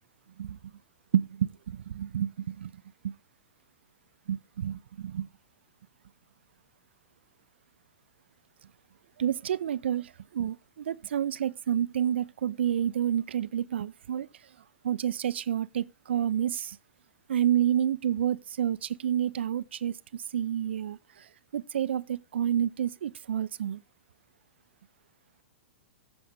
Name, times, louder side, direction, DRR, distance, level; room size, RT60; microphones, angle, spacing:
voice 1, 1.1-2.7 3.0-3.1 4.3-5.3 9.2-14.3 14.8-16.8 17.3-20.0 20.3-21.0 21.5-23.8, right 10 dB, 65° right, 0.4 m, -29 dB
14.5 x 5.4 x 3.4 m
figure-of-eight pair, 105°, 7 cm